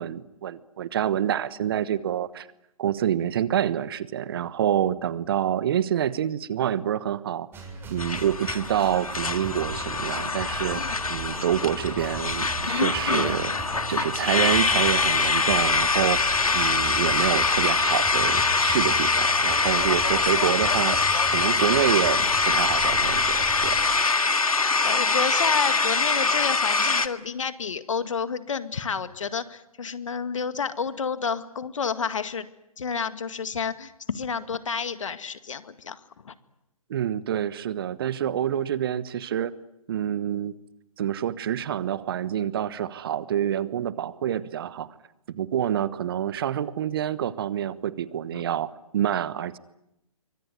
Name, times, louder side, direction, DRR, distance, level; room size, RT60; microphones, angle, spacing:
voice 1, 0.0-2.5 2.8-7.5 7.9-10.8 11.1-13.5 13.9-21.0 21.3-23.8 36.9-39.5 39.9-40.5 41.0-44.9 45.3-49.6, right 10 dB, 40° right, 16 dB, 1.2 m, -27 dB
sound 1, 7.5-23.8, right 3 dB, 10° right, 7.1 m, -38 dB
sound 2, 8.0-27.1, left 4 dB, 80° left, 1.8 m, -24 dB
voice 2, 24.6-32.5 32.8-36.0 36.2-36.3 48.3-48.4, left 6 dB, 60° left, 11 dB, 2.0 m, -30 dB
25.5 x 24.5 x 9.5 m, 0.86 s
figure-of-eight pair, 135°, 18 cm